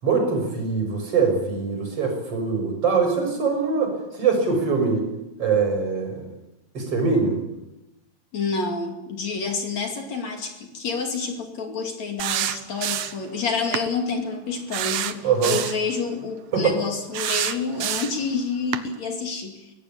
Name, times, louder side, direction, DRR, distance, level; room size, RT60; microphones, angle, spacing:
voice 1, 0.0-5.1 5.4-6.3 6.7-7.4 15.2-15.6 16.5-16.7, right 5 dB, 40° right, 3 dB, 6.9 m, -23 dB
voice 2, 8.3-19.7, left 4 dB, 50° left, 4 dB, 3.7 m, -28 dB
sound 1, 12.2-13.3 13.7-13.9 14.7-15.8 17.1-18.3 18.7-18.9, right 11 dB, 70° right, 2.3 m, -27 dB
23.5 x 17.5 x 8.7 m, 0.95 s
omnidirectional pair, 4.1 m